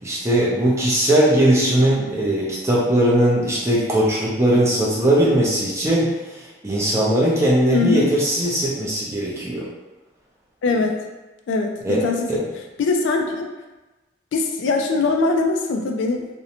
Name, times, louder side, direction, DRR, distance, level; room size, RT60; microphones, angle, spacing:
voice 1, 0.0-9.7 11.8-12.0 12.3-12.4, right 1 dB, 15° right, -5 dB, 0.5 m, -19 dB
voice 2, 7.7-8.2 10.6-11.0 11.5-12.4 12.8-13.5 14.3-16.3, left 3 dB, 70° left, 3 dB, 0.3 m, -21 dB
2.5 x 2.1 x 2.8 m, 1.1 s
head